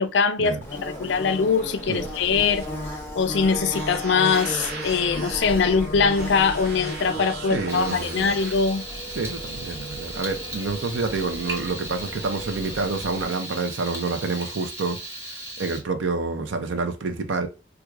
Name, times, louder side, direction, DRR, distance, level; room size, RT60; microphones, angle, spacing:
voice 1, 0.0-2.7 3.2-8.8, left 5 dB, 70° left, 0.4 m, -22 dB
Bird / Buzz, 0.6-13.2, equal, 15° left, 0.6 m, -36 dB
sound 1, 0.9-8.5, right 2 dB, 60° right, 0.8 m, -37 dB
voice 2, 7.5-8.4 9.1-15.0 15.6-17.5, right 3 dB, 85° right, 0.6 m, -28 dB
Frying (food), 7.7-15.8, right 1 dB, 15° right, 1.0 m, -37 dB
4.5 x 2.4 x 2.3 m
head